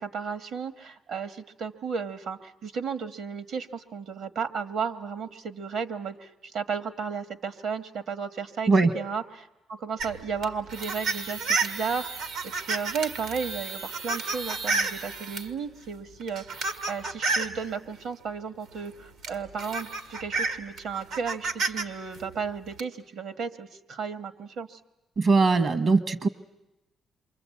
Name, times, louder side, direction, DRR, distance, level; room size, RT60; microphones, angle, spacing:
voice 1, 0.0-12.3 12.6-16.4 16.9-24.8, right 6 dB, 70° right, 11 dB, 1.5 m, -34 dB
sound 1, 10.0-15.5 16.2-17.6 18.8-18.9 19.2-21.8 22.1-22.8, right 4 dB, 90° right, 1.7 m, -31 dB
voice 2, 25.2-26.3, right 3 dB, 55° right, 11 dB, 1.1 m, -21 dB
28.0 x 24.0 x 8.5 m, 0.97 s
cardioid pair, 90°, 0 cm